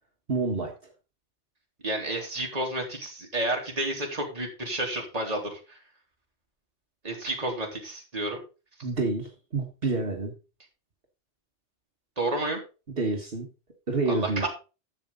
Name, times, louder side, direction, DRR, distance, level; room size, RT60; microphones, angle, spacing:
voice 1, 0.3-0.7 8.8-10.3 12.9-13.5 13.9-14.5, right 3 dB, 55° right, 1 dB, 1.8 m, -28 dB
voice 2, 1.8-5.8 7.0-8.4 12.2-12.6 14.1-14.5, right 1 dB, 35° right, 0 dB, 2.8 m, -30 dB
12.0 x 7.5 x 3.9 m, 0.32 s
omnidirectional pair, 1.2 m